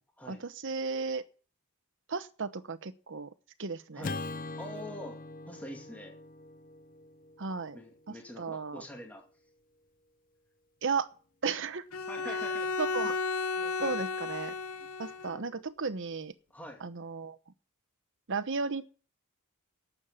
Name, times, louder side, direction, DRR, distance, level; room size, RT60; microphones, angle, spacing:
voice 1, 0.3-1.2 2.1-3.3 3.6-4.1 7.4-7.8 8.4-8.8 10.8-11.1 11.4-11.8 12.2-12.4 12.8-13.2 13.8-14.5 15.0-16.3 16.8-17.4 18.3-18.8, right 4 dB, 60° right, 1.0 m, -34 dB
Acoustic guitar / Strum, 4.0-8.4, left 3 dB, 40° left, 0.6 m, -42 dB
voice 2, 4.6-6.2 7.7-9.2 12.1-12.7 13.0-13.1 13.6-14.0 14.8-14.9 15.3-15.4 16.5-16.8, left 1 dB, 5° left, 2.3 m, -45 dB
Bowed string instrument, 11.9-15.4, left 4 dB, 85° left, 0.8 m, -33 dB
12.0 x 7.4 x 9.9 m
head